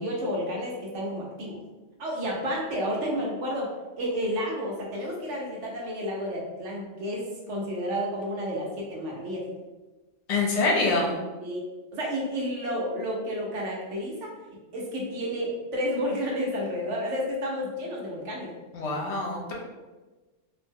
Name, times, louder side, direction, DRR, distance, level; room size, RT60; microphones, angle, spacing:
voice 1, 0.0-1.6 2.0-3.7 4.0-9.4 11.4-11.6 11.9-14.3 14.7-18.5, equal, 75° right, -2 dB, 1.1 m, -31 dB
voice 2, 10.3-11.2 18.7-19.5, left 3 dB, 65° left, -2 dB, 0.9 m, -25 dB
2.7 x 2.0 x 3.4 m, 1.2 s
omnidirectional pair, 1.3 m